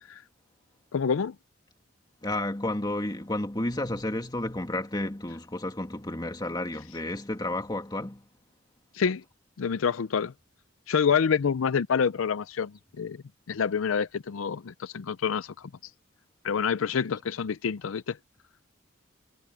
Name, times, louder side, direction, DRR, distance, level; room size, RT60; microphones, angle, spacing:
voice 1, 0.9-1.4 8.9-9.2 9.6-10.3 10.9-13.2 13.5-15.7 16.4-18.2, left 6 dB, 80° left, 0.5 m, -27 dB
voice 2, 2.2-8.2, left 1 dB, 20° left, 2.0 m, -31 dB
head